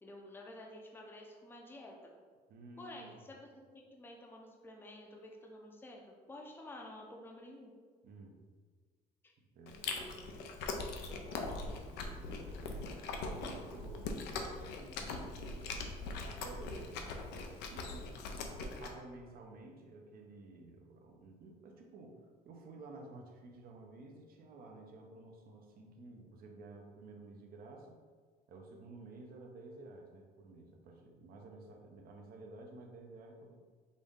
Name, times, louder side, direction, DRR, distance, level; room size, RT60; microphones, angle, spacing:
voice 1, 0.0-2.1 2.8-3.4 3.7-7.7 9.2-9.3 9.7-10.2, left 1 dB, 10° left, 0 dB, 0.6 m, -51 dB
voice 2, 2.5-3.2 8.0-8.4 9.5-10.0 11.2-12.9 13.2-28.0 28.5-33.5, right 2 dB, 60° right, 2 dB, 0.8 m, -53 dB
Chewing mastication, 9.7-18.9, left 3 dB, 85° left, 0.6 m, -41 dB
5.2 x 2.6 x 3.6 m, 1.5 s
cardioid pair, 110°, 17 cm